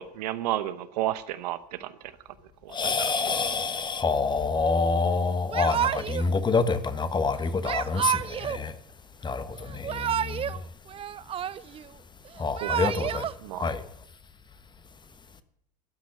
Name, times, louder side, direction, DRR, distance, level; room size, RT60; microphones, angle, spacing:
voice 1, 0.0-2.0 2.6-3.3 12.6-12.7 13.4-13.6, right 13 dB, 75° right, 0.9 m, -32 dB
voice 2, 2.7-8.7 9.2-9.5 9.8-10.4 12.4-13.3 13.6-13.8, left 4 dB, 20° left, 1.2 m, -27 dB
Yell / Crying sobbing, 5.5-6.3 7.6-8.6 9.7-10.6 10.9-11.9 12.4-13.3, right 9 dB, 25° right, 0.4 m, -29 dB
13.5 x 6.1 x 9.8 m
hypercardioid pair, 80°, 21 cm